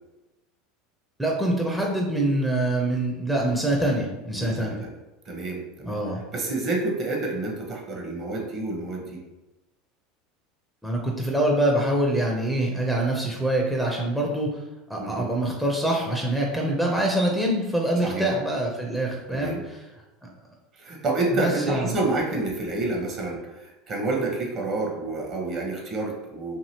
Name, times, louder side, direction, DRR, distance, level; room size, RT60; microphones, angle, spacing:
voice 1, 1.2-4.8 5.9-6.2 10.8-14.6 14.9-19.8 21.3-21.9, right 1 dB, ahead, -1 dB, 0.5 m, -25 dB
voice 2, 4.4-4.9 5.2-6.0 6.3-9.2 15.0-15.3 18.0-18.3 19.3-19.6 20.7-26.6, right 2 dB, 40° right, 0 dB, 0.9 m, -29 dB
2.8 x 2.7 x 2.8 m, 1.0 s
hypercardioid pair, 80°, 0 cm